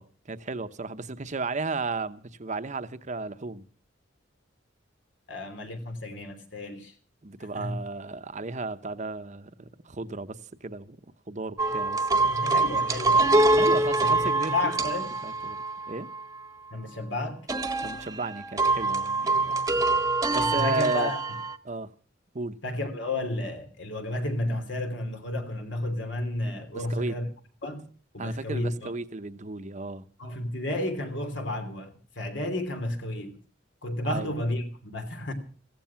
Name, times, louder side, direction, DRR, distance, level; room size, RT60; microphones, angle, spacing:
voice 1, 0.0-3.6 7.2-11.0 11.3-12.3 13.6-14.7 15.2-15.6 15.9-16.1 17.8-19.5 20.3-21.1 21.6-21.9 22.3-22.6 26.7-27.2 28.2-30.1 34.1-34.3, right 3 dB, 40° right, 0.9 m, -34 dB
voice 2, 5.3-6.9 7.5-7.8 12.3-13.5 13.7-15.1 16.7-17.4 19.6-19.8 20.3-21.2 22.6-27.3 27.6-27.8 28.1-28.9 30.2-33.4 33.8-35.3, left 1 dB, 70° left, 3.0 m, -32 dB
sound 1, 11.6-16.2 17.5-21.6, right 2 dB, 20° right, 1.2 m, -25 dB
16.0 x 15.0 x 5.8 m
head